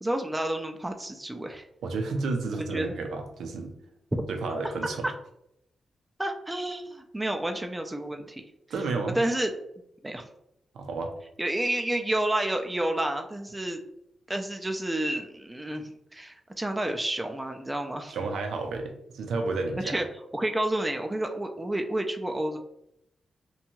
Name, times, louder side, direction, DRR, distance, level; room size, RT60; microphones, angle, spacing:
voice 1, 0.0-1.6 2.5-2.9 4.1-4.2 5.0-5.1 6.2-8.4 9.2-9.5 10.0-10.3 11.4-13.8 14.3-18.2 19.8-20.0 20.3-22.6, right 1 dB, 15° right, 5 dB, 0.3 m, -30 dB
voice 2, 1.8-3.7 4.3-5.1 8.7-9.2 10.7-11.1 18.1-20.0, right 3 dB, 85° right, 4 dB, 0.5 m, -31 dB
2.6 x 2.2 x 2.9 m, 0.78 s
cardioid pair, 80°, 0 cm